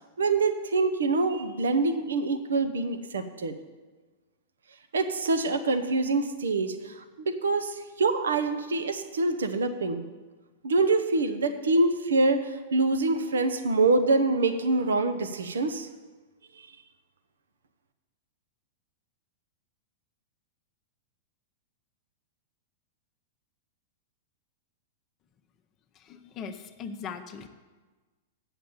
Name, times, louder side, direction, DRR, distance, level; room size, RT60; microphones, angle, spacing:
voice 1, 0.2-3.6 4.9-6.9 7.3-10.0 10.6-15.9, right 3 dB, 75° right, 8 dB, 0.9 m, -25 dB
voice 2, 25.9-27.5, left 6 dB, 35° left, 7 dB, 0.7 m, -39 dB
8.6 x 7.2 x 7.1 m, 1.3 s
figure-of-eight pair, 100°, 0 cm